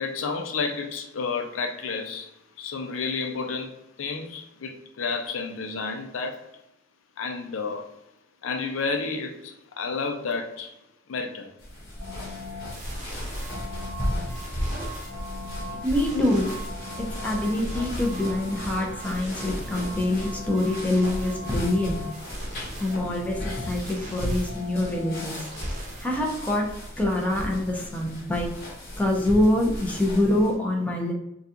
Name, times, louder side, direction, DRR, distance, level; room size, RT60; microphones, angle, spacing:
voice 1, 0.0-2.3 2.6-6.4 7.2-7.8 8.4-10.7 11.1-11.5 16.1-16.3, left 4 dB, 85° left, 4 dB, 0.5 m, -31 dB
sound 1, 11.6-30.6, equal, 55° left, 1.2 m, -35 dB
sound 2, 12.0-26.6, left 2 dB, 40° right, 0.8 m, -41 dB
sound 3, 13.3-22.1, right 4 dB, 85° right, 0.7 m, -44 dB
voice 2, 15.7-16.5 17.0-22.0 22.5-25.5 26.0-26.7 27.0-28.5 29.0-31.1, left 1 dB, 10° left, -1 dB, 0.6 m, -25 dB
3.8 x 2.3 x 2.7 m, 0.83 s
head